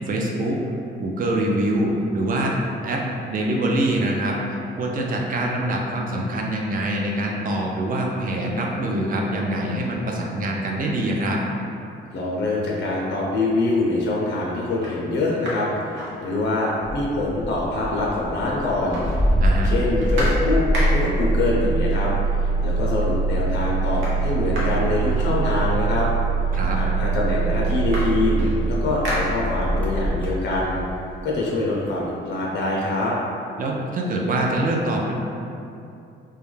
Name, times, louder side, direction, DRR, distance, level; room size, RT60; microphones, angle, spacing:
voice 1, 0.1-0.6 1.0-11.4 19.4-19.7 26.5-26.8 33.6-35.1, right 1 dB, 45° right, -1 dB, 0.4 m, -24 dB
voice 2, 12.1-20.6 20.9-22.1 22.6-26.1 26.7-30.8 31.2-33.2, left 2 dB, 65° left, -4 dB, 0.5 m, -24 dB
small plastic object impacts, 13.3-13.8 14.3-14.4 14.7-16.8 17.1-17.2 17.4-18.3 18.6-21.3 22.2-22.3 22.7-23.2 23.5-25.9 26.7-26.8 27.1-29.9 30.3-32.0, equal, 80° right, 0.7 m, -33 dB
Engine starting, 16.8-30.9, right 3 dB, 5° left, 0.6 m, -23 dB
2.3 x 2.1 x 3.1 m, 2.6 s
cardioid pair, 90°, 20 cm